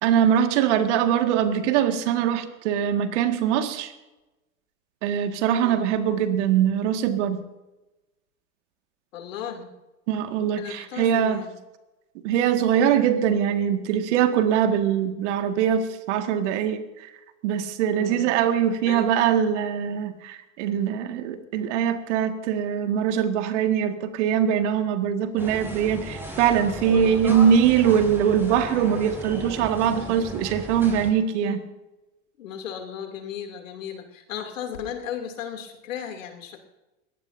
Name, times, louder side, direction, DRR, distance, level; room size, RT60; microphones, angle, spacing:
voice 1, 0.0-3.9 5.0-7.4 10.1-11.4 12.2-17.1 17.4-31.6, right 9 dB, 60° right, 7 dB, 2.0 m, -22 dB
voice 2, 9.1-9.7 10.6-11.6 17.9-18.3 18.9-19.1 26.8-27.3 31.4-31.6 32.4-36.6, left 8 dB, 75° left, 4 dB, 2.9 m, -35 dB
sound 1, 25.4-31.1, right 1 dB, 5° right, 6.6 m, -36 dB
22.5 x 18.0 x 2.7 m, 1.0 s
hypercardioid pair, 100°, 39 cm